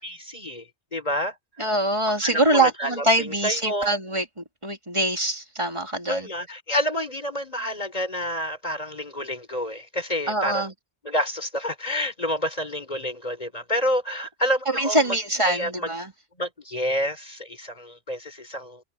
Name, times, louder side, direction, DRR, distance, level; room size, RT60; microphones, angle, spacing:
voice 1, 0.0-1.3 2.2-3.9 6.1-10.7 11.0-15.2 15.4-15.9 16.4-18.8, equal, 30° left, 4.9 m, -29 dB
voice 2, 1.6-6.3 10.3-10.7 14.7-16.1, right 1 dB, 25° right, 4.0 m, -24 dB
omnidirectional pair, 1.2 m